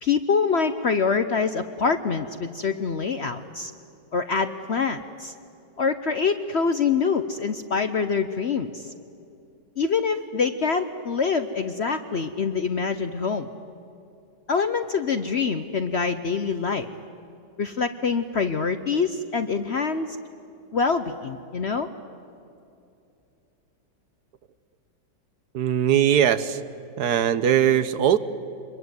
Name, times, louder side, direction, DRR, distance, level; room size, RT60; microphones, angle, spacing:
voice 1, 0.0-3.7 4.1-5.3 5.8-8.9 9.8-13.5 14.5-16.9 17.6-20.2 20.7-21.9, left 5 dB, 55° left, 10 dB, 0.8 m, -25 dB
voice 2, 25.5-26.6 27.0-28.2, right 9 dB, 70° right, 14 dB, 1.3 m, -20 dB
25.0 x 21.5 x 9.4 m, 2.7 s
omnidirectional pair, 1.9 m